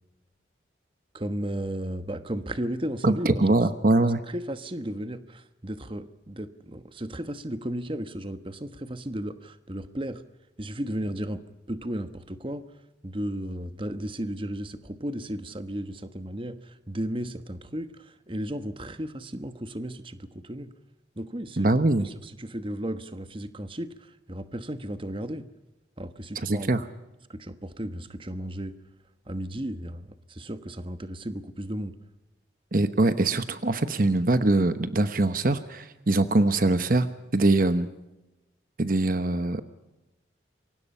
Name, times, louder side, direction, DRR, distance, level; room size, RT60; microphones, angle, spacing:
voice 1, 1.1-3.5 4.3-10.2 10.6-12.6 13.0-20.7 21.2-21.7 22.0-25.5 26.0-26.7 27.3-28.8 29.3-32.0, right 1 dB, 30° right, 10 dB, 1.2 m, -34 dB
voice 2, 3.0-4.2 21.6-22.1 26.4-26.8 32.7-37.9 38.8-39.6, right 2 dB, 50° right, 10 dB, 1.0 m, -23 dB
28.5 x 24.0 x 5.6 m, 1.0 s
head